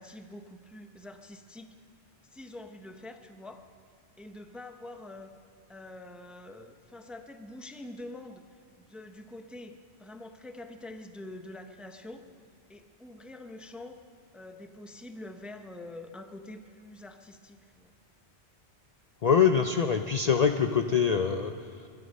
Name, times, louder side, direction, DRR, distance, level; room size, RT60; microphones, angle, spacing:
voice 1, 0.0-1.7 2.3-3.6 4.2-5.3 5.7-12.2 12.7-14.0 14.3-17.9, left 1 dB, ahead, 6 dB, 0.6 m, -45 dB
voice 2, 19.2-21.9, left 6 dB, 50° left, 6 dB, 0.5 m, -24 dB
23.5 x 9.8 x 5.4 m, 2.4 s
omnidirectional pair, 1.1 m